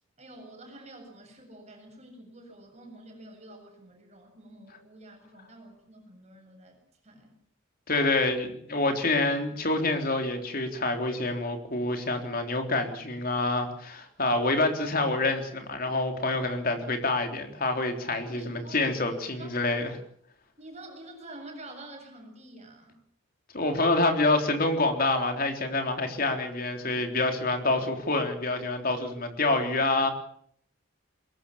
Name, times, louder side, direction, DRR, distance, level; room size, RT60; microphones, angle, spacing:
voice 1, 0.2-6.8 7.0-7.4 18.3-18.8 19.3-19.5 20.6-23.0, right 1 dB, 35° right, 3 dB, 7.6 m, -48 dB
voice 2, 7.9-19.9 23.5-30.1, left 2 dB, 45° left, 5 dB, 3.7 m, -27 dB
23.0 x 21.5 x 7.1 m, 0.64 s
head